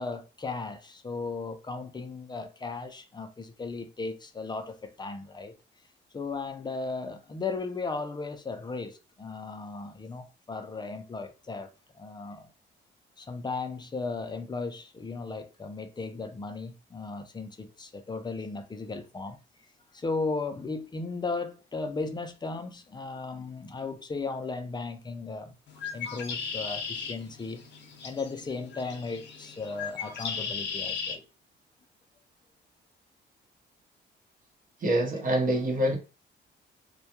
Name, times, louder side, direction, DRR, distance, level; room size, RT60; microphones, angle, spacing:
voice 1, 0.0-5.5 6.1-11.7 11.9-12.5 13.2-19.4 19.9-25.5 25.9-27.6 28.0-31.3, left 3 dB, 20° left, 0.4 m, -36 dB
Bird, 25.7-31.2, left 6 dB, 65° left, 0.6 m, -37 dB
voice 2, 34.8-36.0, right 1 dB, 45° right, 0.8 m, -25 dB
2.2 x 2.2 x 2.8 m
cardioid pair, 90°, 20 cm